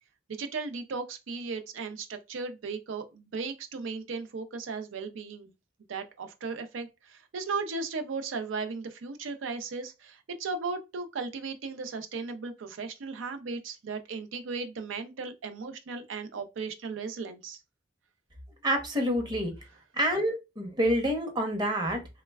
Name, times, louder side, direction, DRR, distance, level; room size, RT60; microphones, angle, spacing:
voice 1, 0.3-5.5 5.9-17.6, right 4 dB, 90° right, 0.5 m, -36 dB
voice 2, 18.6-19.5 19.9-22.1, equal, 25° right, 0.7 m, -27 dB
3.1 x 2.1 x 2.2 m
head